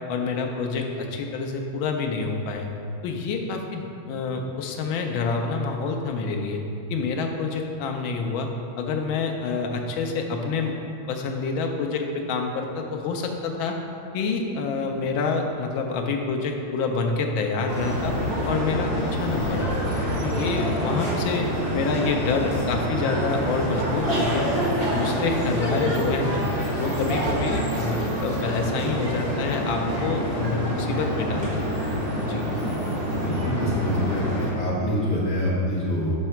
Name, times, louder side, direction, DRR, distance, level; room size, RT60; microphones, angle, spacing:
voice 1, 0.1-2.7 3.0-6.6 6.9-8.5 8.8-10.7 11.1-13.8 14.1-18.1 18.5-19.9 20.2-24.5 24.8-26.5 26.8-32.5, left 4 dB, 75° left, 3 dB, 1.4 m, -27 dB
sound 1, 17.7-34.5, equal, 50° right, 2.2 m, -26 dB
voice 2, 33.1-36.1, left 1 dB, 55° left, -6 dB, 2.0 m, -25 dB
7.1 x 3.3 x 5.7 m, 2.6 s
omnidirectional pair, 2.3 m